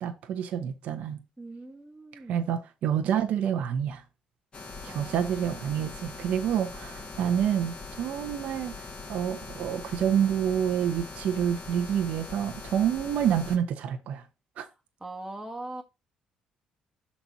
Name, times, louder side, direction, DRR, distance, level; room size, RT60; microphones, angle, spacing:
voice 1, 0.0-1.2 2.3-4.0 4.8-8.7 9.1-14.2 14.6-14.7, right 9 dB, 70° right, 0.8 m, -28 dB
voice 2, 1.4-2.5 4.6-6.2 7.0-7.2 15.0-15.8, right 2 dB, 10° right, 1.1 m, -43 dB
sound 1, 4.5-13.6, left 4 dB, 40° left, 1.7 m, -42 dB
5.9 x 4.2 x 5.0 m
supercardioid pair, 80°, 2 cm